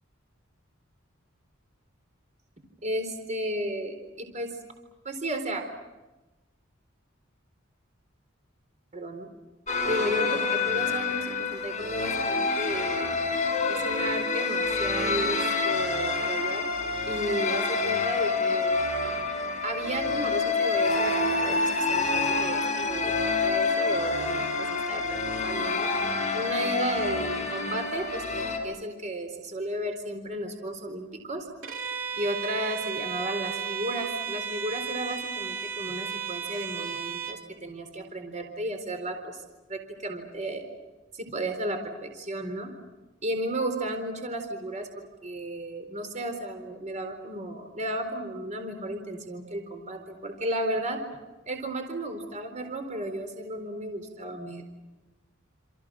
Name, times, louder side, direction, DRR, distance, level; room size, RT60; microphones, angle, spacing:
voice 1, 2.8-4.5 5.0-5.6 8.9-9.3 9.8-13.1 13.7-16.7 17.1-18.8 19.6-21.1 21.4-25.9 26.3-31.5 32.1-39.4 39.7-40.6 41.1-42.7 43.2-51.0 51.5-54.7, right 1 dB, 35° right, 5 dB, 4.1 m, -33 dB
sound 1, 9.7-28.6, left 3 dB, 35° left, 6.4 m, -27 dB
Bowed string instrument, 31.6-37.4, right 7 dB, 90° right, 2.9 m, -34 dB
29.0 x 28.0 x 6.3 m, 1.1 s
head